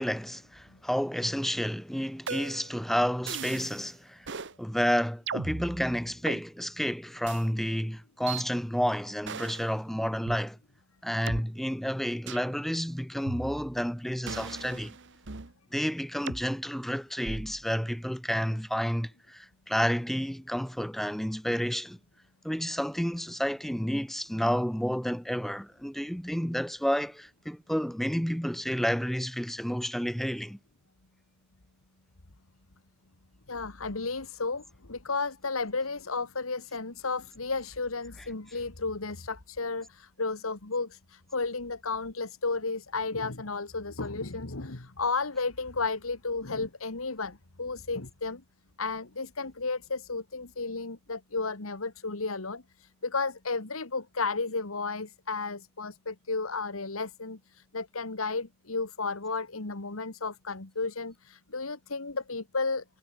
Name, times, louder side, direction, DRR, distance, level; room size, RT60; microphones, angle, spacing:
voice 1, 0.0-4.3 4.6-10.6 11.0-15.0 15.7-22.0 22.4-30.6, equal, ahead, 1.0 m, -30 dB
sound 1, 2.3-2.7 3.3-3.8 4.3-4.5 5.3-6.4 7.3-7.4 8.3-8.4 9.3-9.7 10.3-10.4 11.3-11.4 12.3-12.5 13.3-13.8 14.3-15.5 16.3-16.5 17.3-17.6, right 4 dB, 60° right, 1.5 m, -37 dB
voice 2, 33.5-48.4 48.8-62.8, left 3 dB, 80° left, 1.9 m, -33 dB
head